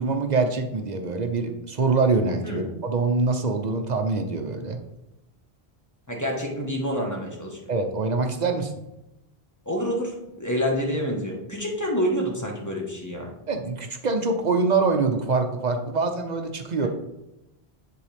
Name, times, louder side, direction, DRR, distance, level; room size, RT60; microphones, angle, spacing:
voice 1, 0.0-4.8 7.7-8.7 13.5-16.9, right 4 dB, 50° right, 5 dB, 0.7 m, -24 dB
voice 2, 6.1-7.7 9.6-13.3 16.8-16.9, equal, 15° left, -1 dB, 1.4 m, -28 dB
10.0 x 3.9 x 3.4 m, 0.92 s
omnidirectional pair, 1.1 m